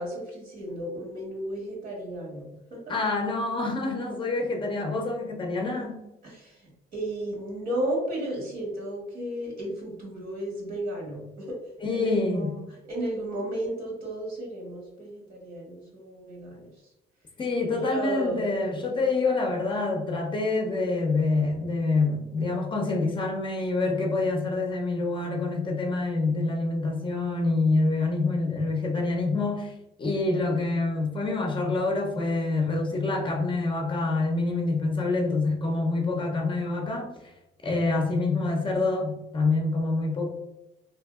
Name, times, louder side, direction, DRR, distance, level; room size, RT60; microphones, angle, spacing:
voice 1, 0.0-2.4 2.7-2.9 6.2-11.6 11.9-16.7 17.7-19.0, right 1 dB, 60° right, -2 dB, 1.4 m, -33 dB
voice 2, 2.9-6.0 11.8-12.5 17.4-29.7 30.0-37.1 37.6-40.3, left 3 dB, 30° left, 1 dB, 0.5 m, -26 dB
2.7 x 2.5 x 2.3 m, 0.93 s
cardioid pair, 110°, 17 cm